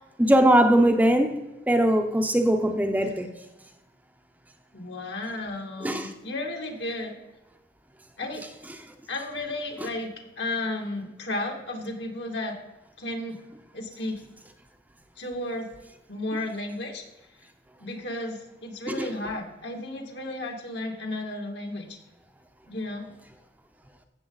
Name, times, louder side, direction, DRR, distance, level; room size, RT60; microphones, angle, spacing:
voice 1, 0.2-1.4 1.7-3.3 5.8-6.1 18.9-19.1, right 1 dB, 10° right, 5 dB, 0.7 m, -21 dB
voice 2, 4.7-7.2 8.2-8.5 9.1-12.6 13.0-13.4 13.7-14.2 15.2-15.7 16.1-17.0 17.8-21.9 22.7-23.1, left 2 dB, 65° left, 2 dB, 2.2 m, -33 dB
15.5 x 6.8 x 4.0 m, 1.0 s
head